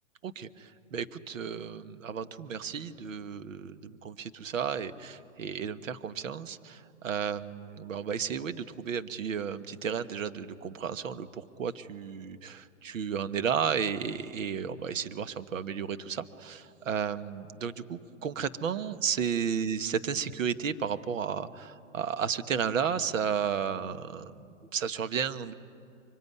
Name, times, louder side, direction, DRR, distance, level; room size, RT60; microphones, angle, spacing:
voice 1, 0.2-25.5, right 7 dB, 70° right, 11 dB, 1.4 m, -33 dB
24.5 x 24.0 x 9.6 m, 2.5 s
hypercardioid pair, 135°, 40 cm